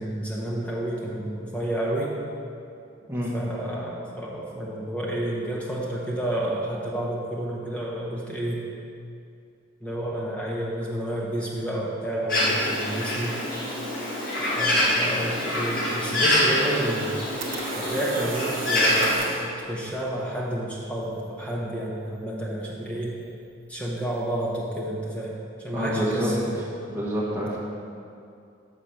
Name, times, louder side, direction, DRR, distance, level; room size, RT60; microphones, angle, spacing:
voice 1, 0.0-2.1 3.3-8.6 9.8-13.3 14.6-17.2 17.7-23.1 23.7-25.3 25.6-26.6, right 1 dB, 5° left, -4 dB, 1.0 m, -30 dB
Bird, 12.3-19.2, left 1 dB, 45° left, 1.8 m, -25 dB
sound 1, 17.1-19.5, right 4 dB, 65° right, 0.8 m, -35 dB
voice 2, 25.7-26.3 26.9-27.6, equal, 10° right, -7 dB, 1.2 m, -27 dB
6.4 x 4.8 x 5.8 m, 2.5 s
head